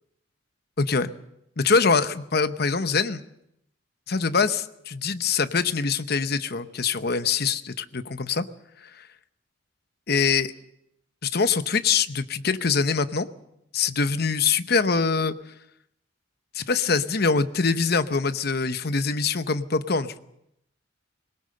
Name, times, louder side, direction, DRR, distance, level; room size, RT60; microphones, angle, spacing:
voice 1, 0.8-1.1 1.6-3.2 4.1-8.4 10.1-10.5 11.2-13.3 13.7-15.3 16.5-20.2, left 5 dB, 50° left, 11 dB, 0.9 m, -24 dB
22.0 x 19.5 x 6.7 m, 0.79 s
head